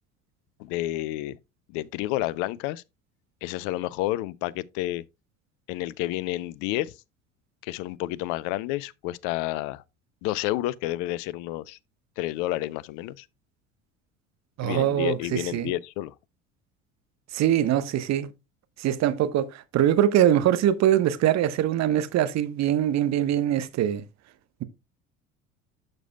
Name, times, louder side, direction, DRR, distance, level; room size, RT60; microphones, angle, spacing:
voice 1, 0.6-1.4 1.7-2.8 3.4-5.0 5.7-6.9 7.6-9.8 10.2-11.8 12.2-13.3 14.6-16.1, left 16 dB, 55° left, 0.6 m, -30 dB
voice 2, 14.6-15.7 17.3-18.3 18.8-24.0, right 11 dB, 45° right, 1.1 m, -23 dB
12.0 x 6.7 x 2.2 m
figure-of-eight pair, 65°, 38 cm